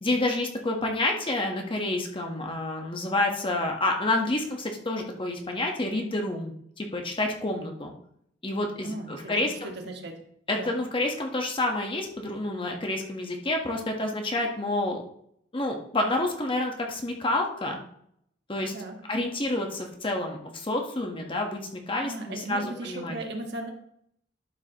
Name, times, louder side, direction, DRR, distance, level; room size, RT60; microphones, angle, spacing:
voice 1, 0.0-7.9 8.4-9.7 10.5-15.0 15.5-17.8 18.5-18.7 19.1-23.2, left 2 dB, 30° left, 2 dB, 1.2 m, -29 dB
voice 2, 8.8-10.2 10.5-10.7 18.7-19.0 22.0-23.7, right 2 dB, 65° right, 3 dB, 1.5 m, -37 dB
12.0 x 5.8 x 2.9 m, 0.70 s
head